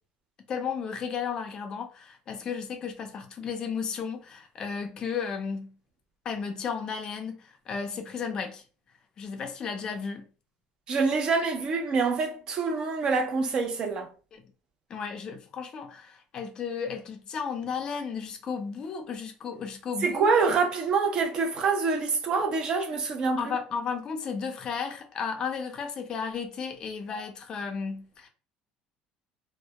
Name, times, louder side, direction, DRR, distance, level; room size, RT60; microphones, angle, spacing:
voice 1, 0.5-5.7 6.3-8.6 9.2-10.3 14.3-14.4 14.9-20.6 23.4-28.3, left 6 dB, 30° left, 0.4 m, -34 dB
voice 2, 10.9-14.1 20.0-23.6, right 4 dB, 35° right, 0.4 m, -26 dB
2.1 x 2.1 x 2.8 m
cardioid pair, 170°, 2 cm